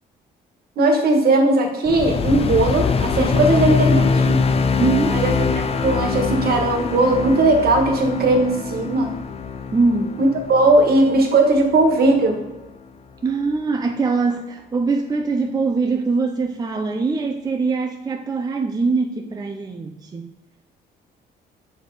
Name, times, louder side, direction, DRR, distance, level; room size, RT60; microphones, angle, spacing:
voice 1, 0.8-4.4 5.1-5.3 5.6-9.1 10.2-12.4, right 2 dB, 55° right, 2 dB, 1.5 m, -18 dB
sound 1, 1.8-12.3, left 5 dB, 30° left, 0.5 m, -23 dB
voice 2, 4.8-5.2 9.7-10.2 13.2-20.3, right 4 dB, 20° right, 4 dB, 0.5 m, -22 dB
6.8 x 4.3 x 4.7 m, 1.0 s
cardioid pair, 115°, 19 cm